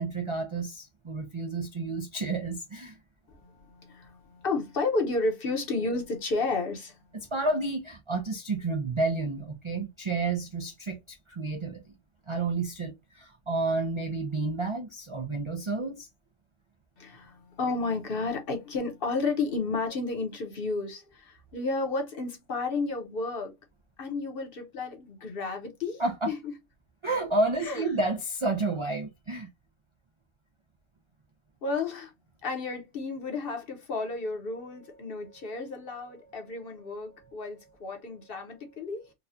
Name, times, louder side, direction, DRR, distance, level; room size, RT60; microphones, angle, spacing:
voice 1, 0.0-3.0 7.3-11.8 12.3-16.1 26.0-26.3 27.0-29.5, right 3 dB, 50° right, 0.3 m, -30 dB
voice 2, 3.3-7.0 17.0-23.5 24.0-26.5 27.6-27.9 31.6-32.1 32.4-39.1, left 3 dB, 50° left, 1.0 m, -32 dB
4.1 x 2.3 x 2.6 m
omnidirectional pair, 1.3 m